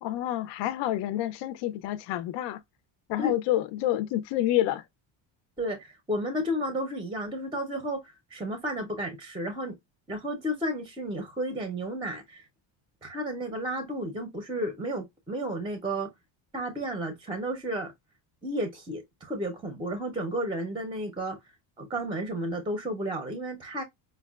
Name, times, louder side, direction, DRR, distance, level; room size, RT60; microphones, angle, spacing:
voice 1, 0.0-2.6 3.1-4.8, left 13 dB, 70° left, 0.5 m, -28 dB
voice 2, 5.6-8.0 8.3-9.8 10.1-12.5 13.0-16.1 16.5-17.9 18.4-21.4 21.8-23.8, equal, 10° right, 0.5 m, -32 dB
5.2 x 2.2 x 2.3 m
cardioid pair, 165°, 45 cm